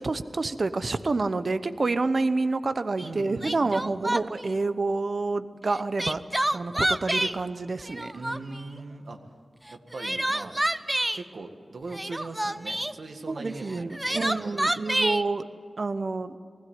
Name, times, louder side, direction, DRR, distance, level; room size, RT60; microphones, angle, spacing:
voice 1, 0.0-6.2 6.5-8.1 13.3-15.4 15.8-16.4, right 3 dB, 55° right, 12 dB, 0.8 m, -28 dB
Crying sobbing, 3.0-3.1 3.4-4.5 5.7-7.4 7.8-8.6 9.7-11.2 11.9-12.9 13.7-15.2, right 1 dB, 15° right, 0.5 m, -28 dB
voice 2, 3.0-3.9 8.1-9.2 9.7-10.6 11.1-14.7 15.0-15.1, right 3 dB, 80° right, 4 dB, 1.9 m, -40 dB
20.0 x 16.0 x 9.5 m, 2.1 s
wide cardioid pair, 100°, 0 cm